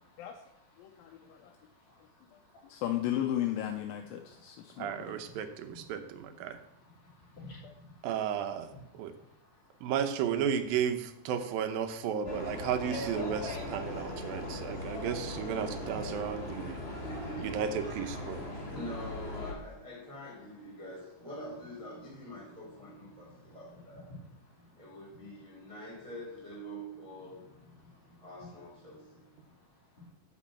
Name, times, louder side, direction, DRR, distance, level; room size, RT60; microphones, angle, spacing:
voice 1, 0.1-1.4 1.8-2.0 2.6-2.8 4.3-4.8 5.7-5.8 6.8-8.0 8.7-9.9 18.5-18.6 22.9-23.6 24.1-24.2 24.5-24.7 27.3-28.3 28.9-29.5 30.0-30.1, left 2 dB, 50° left, -4 dB, 3.8 m, -56 dB
voice 2, 0.8-1.5 2.6-5.1 7.6-7.7, left 12 dB, 80° left, 4 dB, 2.4 m, -35 dB
voice 3, 4.8-6.6 8.0-8.7 8.9-9.1 9.8-16.8 17.4-18.4, right 8 dB, 75° right, 8 dB, 2.6 m, -33 dB
sound 1, 12.2-19.5, left 2 dB, 20° left, 2.3 m, -39 dB
voice 4, 17.0-17.7 18.5-24.1 24.8-27.5 28.2-29.3, equal, 10° right, -7 dB, 2.4 m, -45 dB
10.0 x 5.1 x 7.5 m, 0.80 s
omnidirectional pair, 4.3 m